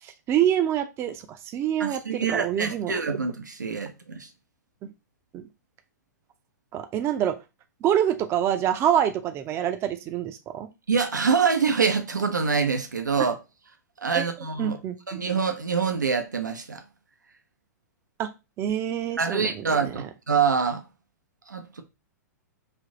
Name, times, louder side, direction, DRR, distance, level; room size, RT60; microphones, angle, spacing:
voice 1, 0.0-3.0 4.8-4.9 5.3-5.4 6.7-7.4 7.8-10.7 14.1-14.2 14.6-15.2 18.2-18.3 18.6-20.1, right 10 dB, 25° right, 0.5 m, -26 dB
voice 2, 1.8-4.3 10.9-13.4 14.0-14.8 15.1-16.8 19.2-20.8 21.5-21.8, right 5 dB, 85° right, 0.6 m, -25 dB
3.5 x 2.6 x 3.7 m
figure-of-eight pair, 105°, 10 cm